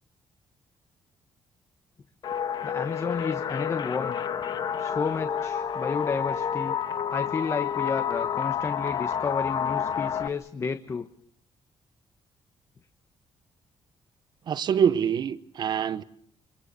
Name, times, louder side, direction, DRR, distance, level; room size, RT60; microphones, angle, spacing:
sound 1, 2.2-10.3, left 8 dB, 50° left, 1.5 m, -29 dB
voice 1, 2.6-4.2 4.8-6.8 7.1-11.1, left 5 dB, 30° left, 1.1 m, -31 dB
voice 2, 14.5-16.0, right 8 dB, 50° right, 1.1 m, -25 dB
27.0 x 24.5 x 6.9 m
cardioid pair, 140°, 9 cm